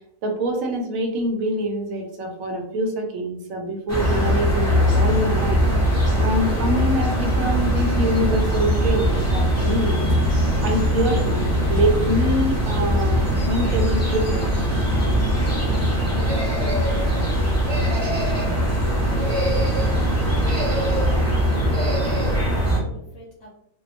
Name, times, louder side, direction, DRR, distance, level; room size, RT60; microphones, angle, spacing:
voice 1, 0.2-14.5, right 1 dB, 75° right, 2 dB, 1.0 m, -25 dB
sound 1, 3.9-22.8, equal, 20° left, 0.5 m, -21 dB
sound 2, 4.3-4.7 5.7-6.2 7.2-7.6 8.6-9.5 11.2-12.0 13.0-13.6 14.6-15.5, left 1 dB, 90° left, 1.1 m, -41 dB
sound 3, 16.2-17.1 17.6-18.6 19.1-19.9 20.4-21.2 21.7-22.4, equal, 20° right, 0.8 m, -29 dB
voice 2, 21.6-23.5, equal, 70° left, -4 dB, 0.9 m, -42 dB
2.8 x 2.1 x 2.4 m, 0.78 s
omnidirectional pair, 1.5 m